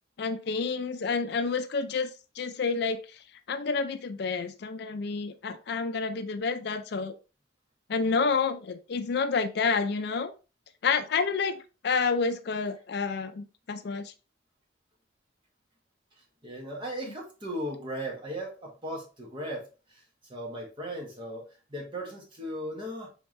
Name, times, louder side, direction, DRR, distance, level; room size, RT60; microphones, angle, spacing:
voice 1, 0.2-2.1 2.4-3.0 3.5-7.2 7.9-10.3 10.8-14.1 17.1-17.2, left 4 dB, 60° left, 10 dB, 0.4 m, -29 dB
voice 2, 16.4-19.7 20.3-23.1, equal, 25° right, -2 dB, 1.5 m, -37 dB
4.6 x 3.6 x 3.1 m, 0.32 s
head